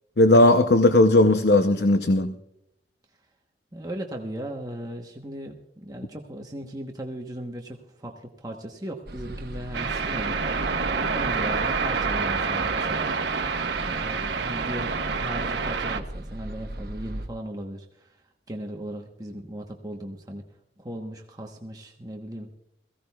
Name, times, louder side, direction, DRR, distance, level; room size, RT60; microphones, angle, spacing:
voice 1, 0.2-2.3, left 2 dB, 70° left, 0.7 m, -17 dB
voice 2, 3.7-13.4 13.7-18.2 18.5-20.5 20.8-22.6, right 1 dB, 20° right, 1.0 m, -37 dB
sound 1, 9.1-17.3, right 1 dB, 60° right, 1.1 m, -38 dB
sound 2, 9.7-16.0, right 5 dB, 80° right, 1.1 m, -27 dB
22.0 x 15.5 x 2.3 m
head